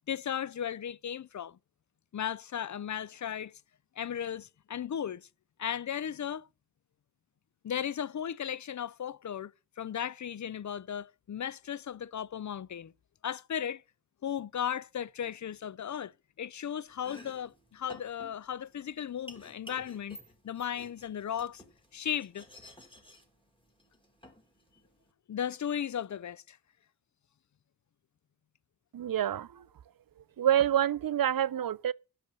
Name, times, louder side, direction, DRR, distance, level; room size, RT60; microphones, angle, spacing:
voice 1, 0.1-1.6 2.1-3.6 4.0-5.3 5.6-6.5 7.6-9.5 9.8-12.9 13.2-13.8 14.2-16.1 16.4-20.2 20.4-21.6 21.9-22.4 25.3-26.6, left 9 dB, 50° left, 0.5 m, -36 dB
Domestic sounds home sounds, 16.9-25.1, left 1 dB, 15° left, 2.8 m, -53 dB
voice 2, 28.9-29.5 30.4-31.9, right 10 dB, 65° right, 0.5 m, -27 dB
10.5 x 5.9 x 6.9 m
wide cardioid pair, 55°, 37 cm